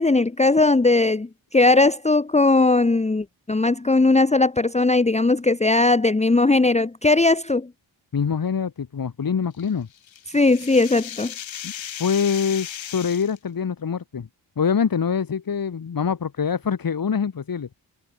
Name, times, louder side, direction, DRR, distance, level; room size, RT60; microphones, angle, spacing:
voice 1, 0.0-7.7 10.3-11.3, left 3 dB, 15° left, 0.9 m, -19 dB
voice 2, 8.1-9.9 11.6-11.7 12.0-14.3 14.6-17.7, left 6 dB, 45° left, 1.6 m, -24 dB
sound 1, 9.6-13.4, left 9 dB, 75° left, 1.6 m, -36 dB
cardioid pair, 60°, 46 cm